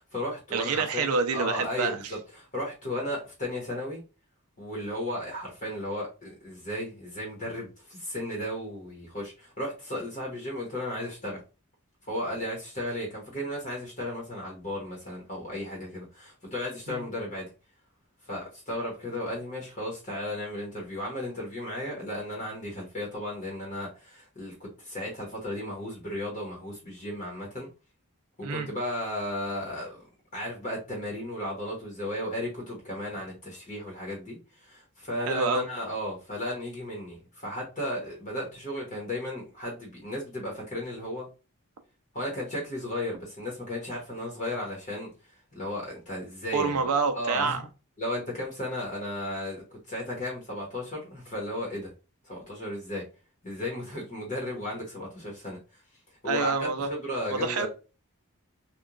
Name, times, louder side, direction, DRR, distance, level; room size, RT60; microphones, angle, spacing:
voice 1, 0.0-1.1 1.3-4.0 4.6-11.4 12.1-17.5 18.3-27.7 28.5-30.0 30.3-41.3 42.1-45.1 45.5-46.8 47.1-47.6 48.0-51.9 52.3-53.0 53.4-55.6 56.2-56.5 56.8-57.7, left 1 dB, 35° left, 0.9 m, -34 dB
voice 2, 0.5-2.0 16.9-17.0 28.4-28.7 35.3-35.6 46.5-47.6 56.3-56.9 57.4-57.7, right 4 dB, 80° right, 0.5 m, -27 dB
2.9 x 2.2 x 2.3 m
head